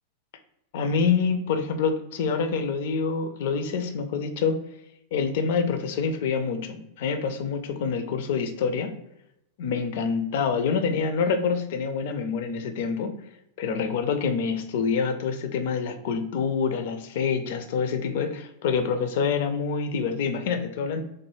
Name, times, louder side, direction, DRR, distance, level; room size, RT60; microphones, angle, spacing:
voice 1, 0.7-4.6 5.1-8.9 9.6-13.1 13.6-21.0, left 5 dB, 55° left, 7 dB, 0.4 m, -26 dB
3.1 x 2.1 x 3.1 m, 0.83 s
figure-of-eight pair, 90°, 0 cm